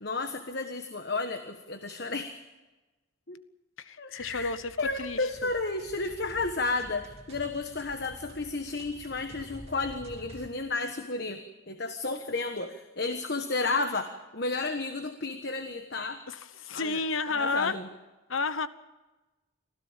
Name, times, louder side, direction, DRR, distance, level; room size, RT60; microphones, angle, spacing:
voice 1, 0.0-2.4 3.3-3.4 4.0-16.2 16.7-17.0 17.3-17.9, left 3 dB, 50° left, 7 dB, 1.3 m, -32 dB
voice 2, 3.8-5.5 16.3-17.8 18.3-18.7, left 4 dB, 70° left, 13 dB, 1.1 m, -31 dB
sound 1, 4.2-10.5, right 1 dB, 30° right, 2.5 m, -49 dB
25.5 x 16.0 x 7.3 m, 1.1 s
head